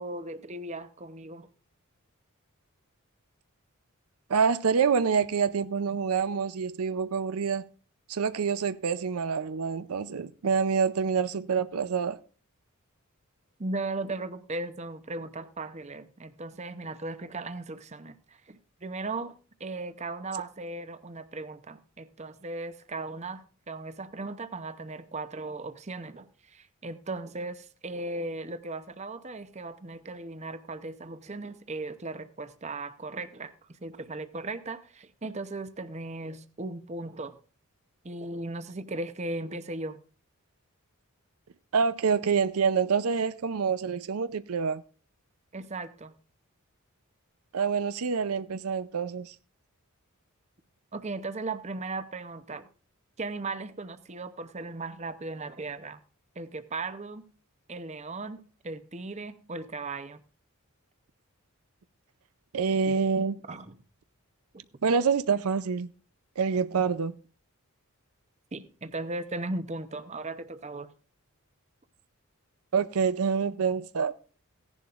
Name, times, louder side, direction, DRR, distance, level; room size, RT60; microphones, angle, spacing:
voice 1, 0.0-1.5 13.6-19.3 19.6-33.5 33.8-37.4 38.0-40.0 45.5-46.1 50.9-52.7 53.2-56.0 56.4-57.2 57.7-60.2 62.9-63.0 63.5-63.8 64.5-64.6 68.5-70.9, right 2 dB, 30° right, 0.7 m, -37 dB
voice 2, 4.3-7.6 8.1-12.2 41.7-44.8 47.5-49.3 62.5-63.4 64.8-65.9 66.4-67.2 72.7-74.1, right 6 dB, 75° right, 0.5 m, -26 dB
16.5 x 11.0 x 2.4 m
head